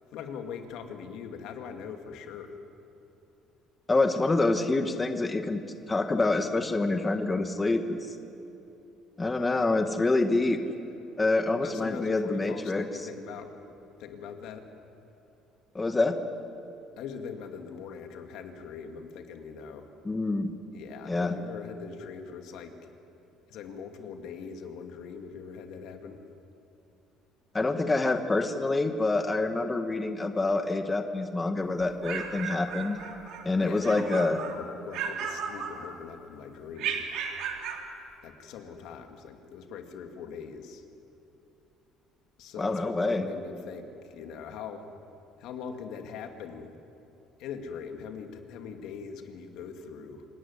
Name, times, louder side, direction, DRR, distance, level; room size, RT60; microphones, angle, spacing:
voice 1, 0.1-2.6 11.6-13.5 14.0-14.7 17.0-19.9 20.7-22.8 23.5-26.2 33.6-37.1 38.2-40.9 42.4-44.9 45.4-46.7 47.4-50.3, left 6 dB, 75° left, 5 dB, 2.2 m, -41 dB
voice 2, 3.9-5.6 5.9-8.2 9.2-10.6 11.2-12.8 15.7-16.1 20.0-20.5 21.1-21.4 27.5-33.0 33.4-34.4 42.6-43.2, left 2 dB, 15° left, 6 dB, 1.3 m, -26 dB
sound 1, 31.8-33.5 33.8-34.6 34.9-36.2 36.8-37.9, right 7 dB, 75° right, 3.1 m, -35 dB
26.0 x 14.5 x 9.8 m, 3.0 s
cardioid pair, 130°, 0 cm